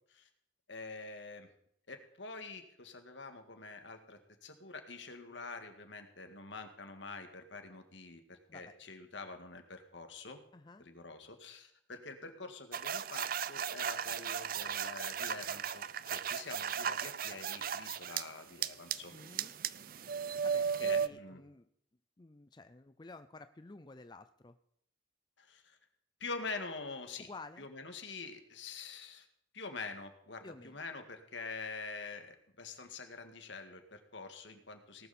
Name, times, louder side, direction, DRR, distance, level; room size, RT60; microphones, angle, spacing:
voice 1, 0.7-1.5 1.9-10.4 10.8-19.1 20.8-21.4 25.4-25.8 26.2-27.3 27.6-29.3 29.5-35.1, left 4 dB, 75° left, 6 dB, 2.0 m, -46 dB
voice 2, 10.5-10.9 19.1-19.5 20.4-21.7 22.2-24.6 27.2-27.7 30.4-30.8, left 3 dB, 25° left, 9 dB, 0.5 m, -52 dB
sound 1, 12.7-18.2 18.6-21.1, right 7 dB, 50° right, 0.5 m, -36 dB
18.5 x 12.5 x 4.3 m, 0.70 s
head